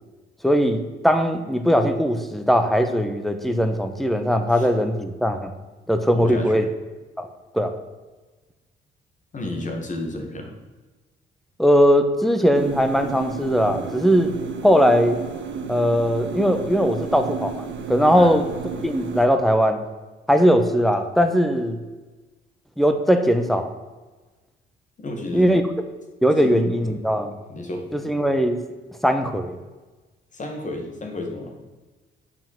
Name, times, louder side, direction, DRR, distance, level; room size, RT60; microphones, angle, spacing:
voice 1, 0.4-5.5 5.9-6.6 7.2-7.3 7.5-7.8 11.6-14.3 14.6-15.2 15.7-18.4 18.8-19.8 20.3-21.8 22.8-23.7 25.3-25.6 26.2-27.3 27.9-28.6 29.0-29.6, equal, ahead, 7 dB, 1.0 m, -19 dB
voice 2, 6.1-6.6 9.3-10.5 18.1-18.3 25.0-25.5 26.4-27.0 27.5-28.0 30.3-31.6, left 2 dB, 40° left, 3 dB, 2.0 m, -32 dB
sound 1, 12.5-19.3, right 6 dB, 65° right, 1.2 m, -33 dB
7.3 x 5.8 x 7.4 m, 1.2 s
cardioid pair, 90°, 20 cm